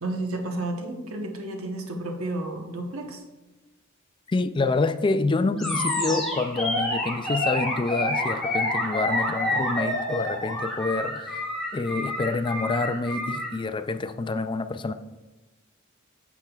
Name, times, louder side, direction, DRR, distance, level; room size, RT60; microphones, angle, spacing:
voice 1, 0.0-3.2, right 2 dB, 90° right, 1.0 m, -31 dB
voice 2, 4.3-11.4 11.7-14.9, left 3 dB, 25° left, 0.3 m, -27 dB
Animal, 5.6-13.5, left 1 dB, ahead, 2.2 m, -28 dB
8.7 x 7.4 x 2.3 m
head